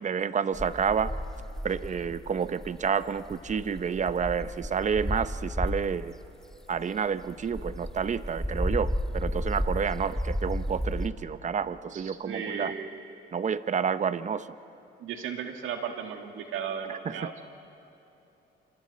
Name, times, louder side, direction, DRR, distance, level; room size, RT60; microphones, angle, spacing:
voice 1, 0.0-1.2 1.6-6.1 6.7-12.7 13.3-14.5 16.9-17.3, right 6 dB, 35° right, 14 dB, 0.7 m, -29 dB
sound 1, 0.5-6.0 6.5-11.1, equal, 5° left, 1.4 m, -33 dB
voice 2, 11.9-12.9 15.0-17.5, right 7 dB, 85° right, 4 dB, 2.0 m, -35 dB
29.0 x 25.5 x 4.2 m, 2.9 s
cardioid pair, 90°, 20 cm